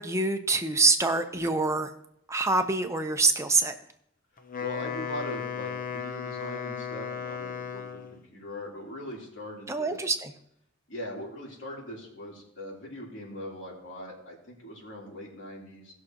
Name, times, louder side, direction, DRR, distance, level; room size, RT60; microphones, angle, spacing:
voice 1, 0.0-1.9 2.3-3.8 9.7-10.3, right 3 dB, 15° right, 7 dB, 0.8 m, -25 dB
Wind instrument woodwind instrument, 4.4-8.2, left 6 dB, 45° left, 0.8 m, -35 dB
voice 2, 4.6-10.1 10.9-15.9, left 1 dB, 70° left, -3 dB, 3.5 m, -40 dB
19.0 x 6.4 x 3.0 m, 0.74 s
head